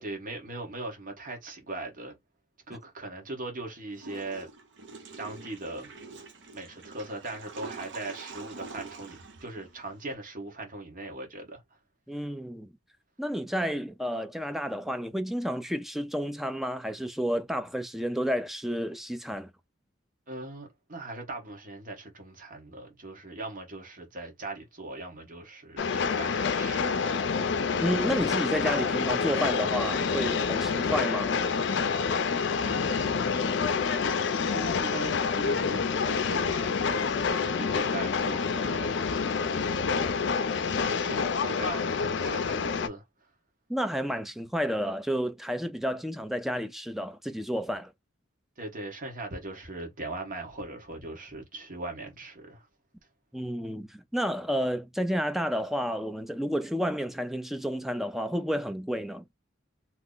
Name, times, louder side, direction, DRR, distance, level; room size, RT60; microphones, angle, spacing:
voice 1, 0.0-2.1 2.7-4.5 5.2-5.9 6.5-11.6 20.3-27.1 32.6-33.5 34.5-38.9 40.6-43.0 48.6-52.7, right 2 dB, 45° right, 1.2 m, -40 dB
Water / Toilet flush, 3.9-10.1, right 4 dB, 65° right, 0.8 m, -45 dB
voice 2, 12.1-12.7 13.2-19.5 27.8-31.3 43.7-47.9 53.3-59.2, equal, ahead, 0.4 m, -31 dB
Train, 25.8-42.9, left 5 dB, 65° left, 0.4 m, -27 dB
2.9 x 2.0 x 3.8 m
head